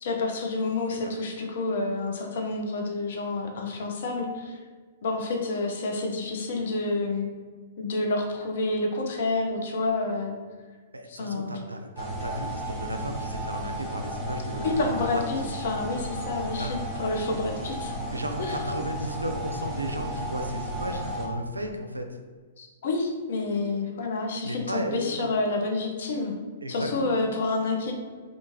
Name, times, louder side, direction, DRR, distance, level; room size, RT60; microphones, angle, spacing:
voice 1, 0.0-4.6 5.0-7.3 7.8-10.3 11.1-11.6 14.6-17.9 18.4-18.6 22.6-26.4 26.7-27.9, left 3 dB, 60° left, 2 dB, 0.5 m, -29 dB
voice 2, 10.9-15.4 16.6-16.8 18.1-22.1 24.4-25.2 26.6-27.2, right 1 dB, 90° right, 5 dB, 0.3 m, -34 dB
sound 1, 12.0-21.3, equal, ahead, 0.7 m, -34 dB
2.4 x 2.4 x 3.0 m, 1.5 s
figure-of-eight pair, 115°, 0 cm